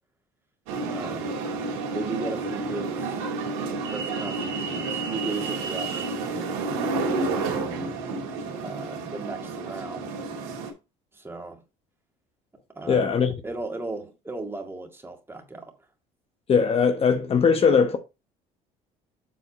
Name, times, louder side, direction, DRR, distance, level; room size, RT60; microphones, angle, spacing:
sound 1, 0.7-10.7, right 3 dB, 90° right, 2.1 m, -30 dB
voice 1, 0.9-1.4 1.9-3.3 3.9-6.2 6.9-7.9 8.6-10.2 11.1-11.6 12.7-13.1 13.4-15.7, right 2 dB, 15° right, 2.0 m, -36 dB
voice 2, 12.9-13.3 16.5-18.0, left 6 dB, 40° left, 1.0 m, -20 dB
7.7 x 4.2 x 4.2 m
supercardioid pair, 90°, 16 cm